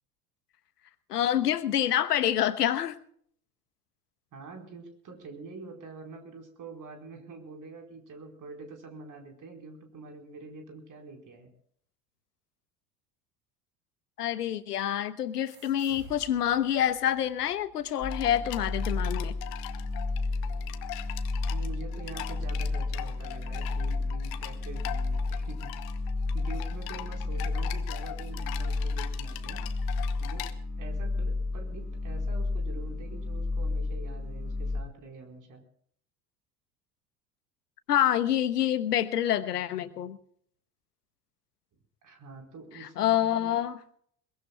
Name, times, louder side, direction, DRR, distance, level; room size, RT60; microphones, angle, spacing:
voice 1, 1.1-3.0 14.2-19.3 37.9-40.2 42.8-43.8, left 11 dB, 80° left, 13 dB, 1.2 m, -27 dB
voice 2, 4.3-11.5 21.5-25.7 26.3-29.6 30.2-30.5 30.8-35.6 42.0-43.6, right 4 dB, 40° right, 3 dB, 4.6 m, -45 dB
sound 1, 15.5-18.7, right 3 dB, 60° right, 5.7 m, -53 dB
sound 2, 18.0-34.8, left 3 dB, 20° left, 5.0 m, -32 dB
sound 3, 18.1-30.5, left 15 dB, 50° left, 1.3 m, -42 dB
22.0 x 21.0 x 2.3 m, 0.62 s
figure-of-eight pair, 70°, 47 cm